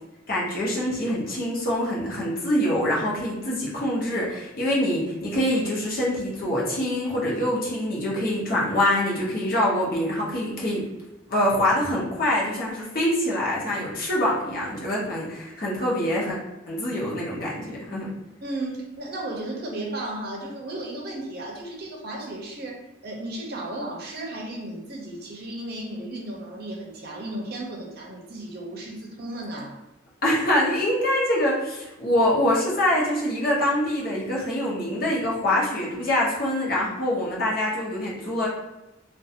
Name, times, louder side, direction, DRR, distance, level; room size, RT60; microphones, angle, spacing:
voice 1, 0.3-10.9 11.3-16.4 16.7-18.1 30.2-38.5, left 1 dB, 50° left, -5 dB, 0.7 m, -25 dB
voice 2, 18.4-29.8, right 1 dB, 55° right, -1 dB, 0.6 m, -34 dB
2.4 x 2.2 x 2.7 m, 0.97 s
head